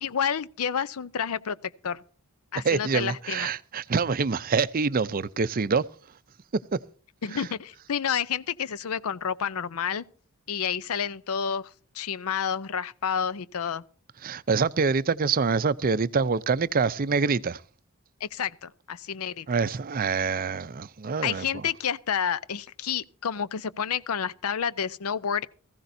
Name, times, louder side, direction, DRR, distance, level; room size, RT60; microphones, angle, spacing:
voice 1, 0.0-1.6 1.8-2.0 2.5-3.5 7.2-10.0 10.5-13.8 18.2-19.5 21.2-25.5, left 7 dB, 70° left, 0.6 m, -29 dB
voice 2, 2.6-5.8 6.7-6.8 7.3-7.5 14.2-17.6 19.5-21.6, right 5 dB, 40° right, 0.5 m, -26 dB
19.0 x 15.0 x 2.7 m
head